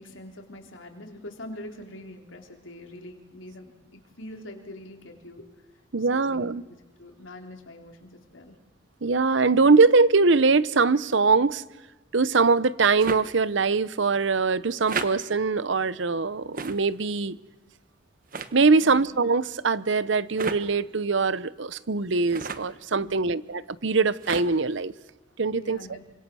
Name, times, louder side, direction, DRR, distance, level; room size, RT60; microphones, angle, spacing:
voice 1, 0.0-5.4 6.0-6.6 7.0-8.6 18.8-19.0 23.0-23.3 25.5-26.0, left 1 dB, 85° left, 3.7 m, -44 dB
voice 2, 5.9-6.6 9.0-11.6 12.1-17.4 18.5-24.9 25.4-25.8, right 4 dB, 70° right, 0.8 m, -22 dB
sound 1, 13.0-13.2 14.8-15.1 16.5-16.8 18.3-18.5 20.3-20.6 22.3-22.7 24.2-24.5, right 4 dB, 45° right, 1.2 m, -32 dB
27.5 x 25.5 x 6.3 m
head